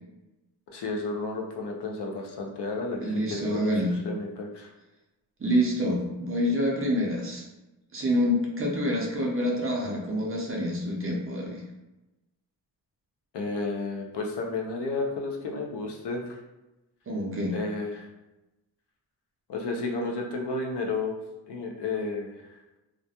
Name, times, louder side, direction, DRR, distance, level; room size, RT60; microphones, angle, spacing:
voice 1, 0.7-3.7 4.0-4.7 13.3-16.4 17.5-18.1 19.5-21.2 21.5-22.5, left 3 dB, 70° left, 1 dB, 0.6 m, -32 dB
voice 2, 3.0-3.9 5.4-7.4 7.9-11.6 17.1-17.5, equal, 30° right, -1 dB, 0.5 m, -27 dB
2.4 x 2.2 x 2.7 m, 1.0 s
wide cardioid pair, 130°, 43 cm